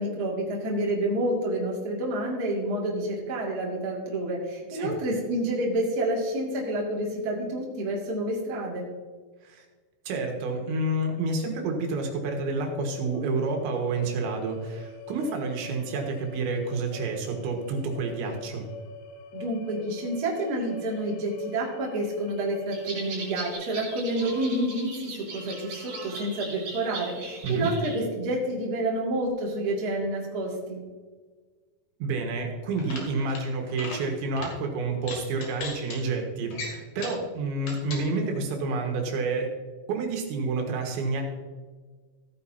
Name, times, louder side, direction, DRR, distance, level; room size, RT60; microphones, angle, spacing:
voice 1, 0.0-8.9 19.3-30.8, right 1 dB, 35° right, -2 dB, 1.7 m, -29 dB
voice 2, 10.1-18.7 27.4-27.7 32.0-39.5 39.9-41.2, right 3 dB, 80° right, 2 dB, 3.8 m, -29 dB
sound 1, 12.0-23.5, left 5 dB, 75° left, 3.0 m, -45 dB
sound 2, 22.7-28.0, right 3 dB, 60° right, 5.5 m, -39 dB
sound 3, 32.7-33.4 33.7-34.0 34.4-34.5 35.0-36.0 36.5-37.2 37.6-38.0, left 3 dB, 55° left, 3.3 m, -37 dB
15.5 x 9.5 x 2.8 m, 1.4 s
omnidirectional pair, 5.3 m